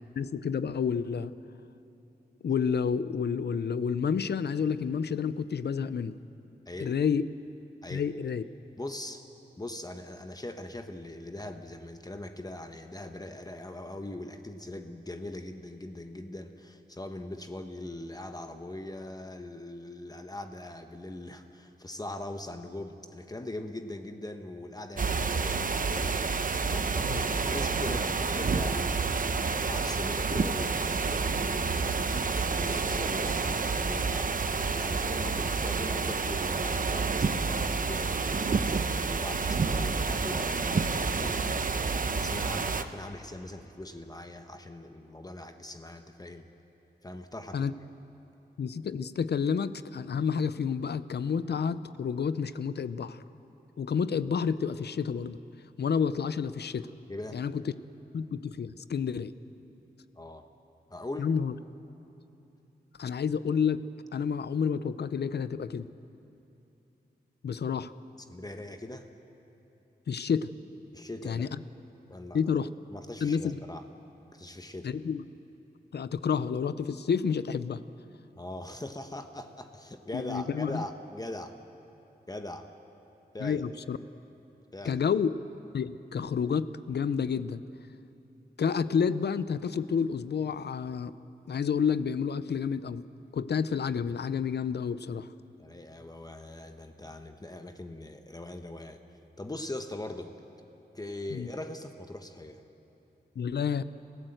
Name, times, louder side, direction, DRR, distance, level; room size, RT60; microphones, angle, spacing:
voice 1, 0.2-1.3 2.4-6.1 6.8-7.3 7.9-8.4 27.1-27.2 47.5-47.7 48.6-53.2 53.8-55.4 55.8-56.9 57.3-57.6 58.1-59.3 61.2-61.5 63.0-63.8 64.1-65.9 67.4-67.9 70.1-70.5 71.2-71.5 72.3-72.7 73.2-73.6 74.8-75.2 75.9-77.8 80.1-80.8 83.4-84.0 84.8-85.3 85.7-87.6 88.6-91.1 91.5-93.0 93.3-95.3 101.3-101.5 103.4-103.8, left 6 dB, 75° left, 14 dB, 0.7 m, -29 dB
voice 2, 8.8-9.2 9.6-34.3 34.7-38.6 39.1-41.7 42.1-46.5 47.0-47.7 57.1-57.4 60.2-60.5 60.9-61.3 68.3-69.1 70.9-71.5 72.1-72.4 72.9-73.8 74.3-74.9 78.3-81.6 82.3-82.7 83.3-83.6 84.7-85.0 95.6-99.0 99.4-100.3 100.9-102.6, left 1 dB, 20° left, 6 dB, 1.1 m, -41 dB
sound 1, 25.0-42.8, right 4 dB, 50° right, 0.9 m, -29 dB
28.5 x 15.5 x 7.9 m, 2.9 s
wide cardioid pair, 90°, 17 cm